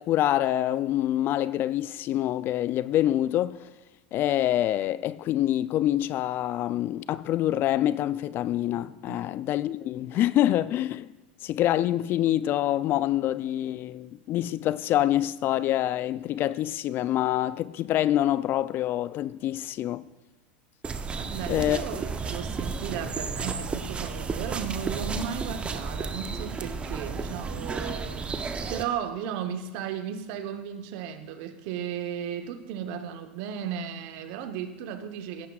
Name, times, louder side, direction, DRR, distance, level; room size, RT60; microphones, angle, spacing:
voice 1, 0.0-3.7 4.1-11.1 11.4-20.0 21.5-21.8, left 13 dB, 40° left, 0.3 m, -26 dB
sound 1, 20.8-28.8, right 4 dB, 20° right, 0.7 m, -33 dB
voice 2, 21.1-28.3 28.7-35.5, right 8 dB, 60° right, 1.0 m, -35 dB
16.5 x 9.4 x 2.4 m
hypercardioid pair, 110°, 6 cm